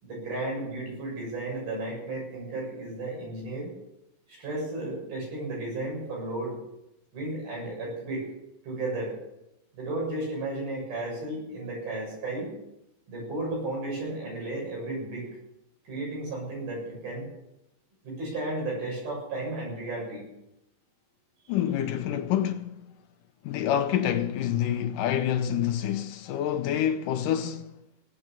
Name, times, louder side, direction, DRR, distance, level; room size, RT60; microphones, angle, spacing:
voice 1, 0.0-3.7 4.3-6.6 7.1-8.3 8.6-9.1 9.7-12.5 13.1-15.3 15.9-17.3 18.0-20.2, right 2 dB, 90° right, 8.9 m, -33 dB
voice 2, 21.5-22.9 23.4-27.7, left 10 dB, 75° left, 2.2 m, -27 dB
19.0 x 8.6 x 7.0 m
omnidirectional pair, 4.2 m